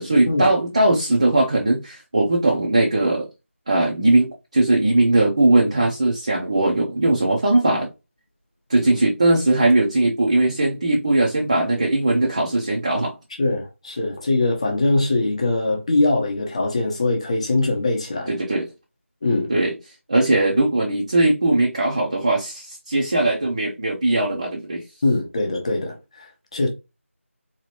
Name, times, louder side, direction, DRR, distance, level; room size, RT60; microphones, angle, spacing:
voice 1, 0.0-3.3 3.7-7.9 8.7-13.1 18.3-18.7 19.5-19.7 20.1-24.8, right 2 dB, 25° right, 0.5 m, -19 dB
voice 2, 13.4-18.3 19.2-19.5 25.0-26.7, left 2 dB, 25° left, 0.8 m, -22 dB
3.9 x 2.9 x 2.9 m
figure-of-eight pair, 165°, 8 cm